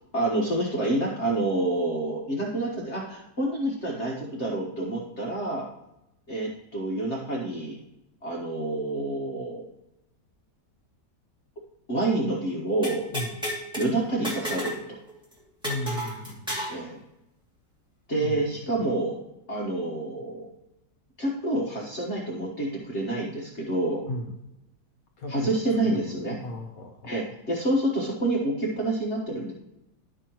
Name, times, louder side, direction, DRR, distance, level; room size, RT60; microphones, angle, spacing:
voice 1, 0.1-5.7 6.3-7.8 8.2-9.7 11.9-13.0 13.7-15.0 16.7-17.0 18.1-19.2 19.5-20.5 21.2-24.0 25.3-26.4 27.0-29.5, right 2 dB, 45° left, -3 dB, 1.7 m, -28 dB
sound 1, 12.8-13.9 14.2-14.8 15.1-15.2 15.6-16.8, equal, 5° right, 2.3 m, -32 dB
voice 2, 15.6-16.6 18.1-18.5 24.0-24.3 25.2-25.6 25.8-26.1 26.4-27.1, left 1 dB, 60° left, 2 dB, 1.6 m, -35 dB
11.5 x 6.0 x 3.0 m, 0.88 s
omnidirectional pair, 1.8 m